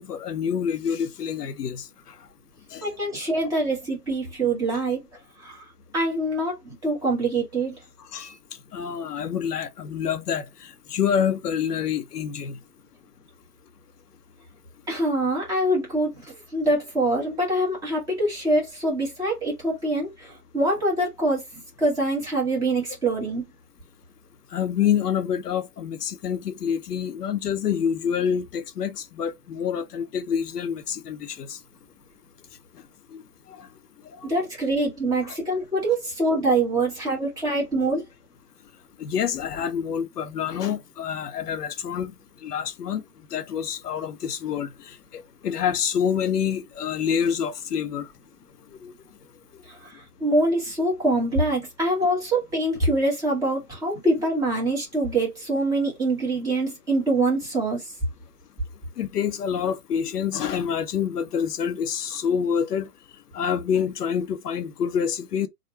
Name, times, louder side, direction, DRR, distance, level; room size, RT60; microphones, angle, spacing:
voice 1, 0.0-1.9 2.7-2.8 8.1-8.4 8.7-12.6 24.5-31.6 33.1-33.2 33.5-33.7 34.1-34.2 35.2-35.4 39.0-42.1 42.4-43.0 43.3-48.1 48.8-48.9 59.0-62.9 63.3-65.5, left 8 dB, 75° left, 0.7 m, -27 dB
voice 2, 2.8-5.0 5.4-5.6 5.9-7.8 14.9-21.4 21.8-23.4 34.2-38.0 49.7-57.9, right 2 dB, 5° right, 1.0 m, -24 dB
3.6 x 2.2 x 4.2 m
hypercardioid pair, 150°, 48 cm